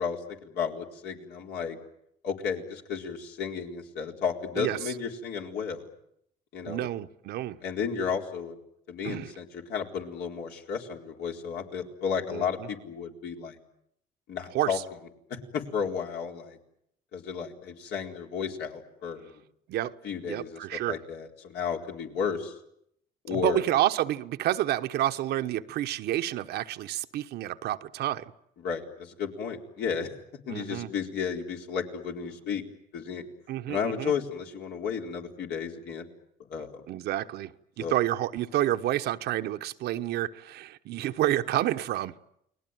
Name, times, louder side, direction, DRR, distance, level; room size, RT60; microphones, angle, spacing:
voice 1, 0.0-1.8 2.2-5.9 6.5-6.9 7.6-8.6 8.9-13.6 14.3-14.8 15.3-16.6 17.1-19.4 20.0-22.5 23.2-23.7 28.6-30.2 30.5-32.6 32.9-33.2 33.7-36.1 36.5-36.8 37.8-37.9, left 6 dB, 75° left, 4.3 m, -33 dB
voice 2, 6.6-7.6 9.0-9.3 12.3-12.7 14.5-14.7 19.7-20.0 20.2-21.0 23.3-28.3 30.5-30.9 33.5-34.1 36.9-42.1, right 13 dB, 75° right, 1.1 m, -29 dB
29.5 x 20.5 x 9.3 m
cardioid pair, 110°, 17 cm